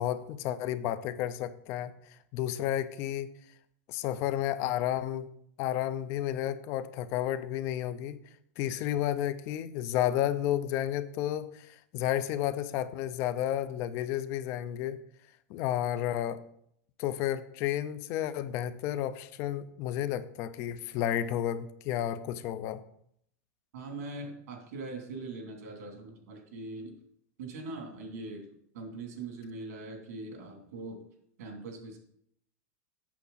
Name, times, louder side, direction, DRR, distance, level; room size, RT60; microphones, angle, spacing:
voice 1, 0.0-3.3 3.9-5.3 5.6-8.2 8.6-15.0 15.5-16.4 17.0-22.8, left 12 dB, 30° left, 14 dB, 0.4 m, -32 dB
voice 2, 23.7-26.9 27.4-28.5 28.7-31.0 31.4-32.0, right 3 dB, 85° right, 2 dB, 2.9 m, -41 dB
8.3 x 7.0 x 4.0 m, 0.69 s
supercardioid pair, 175°, 8 cm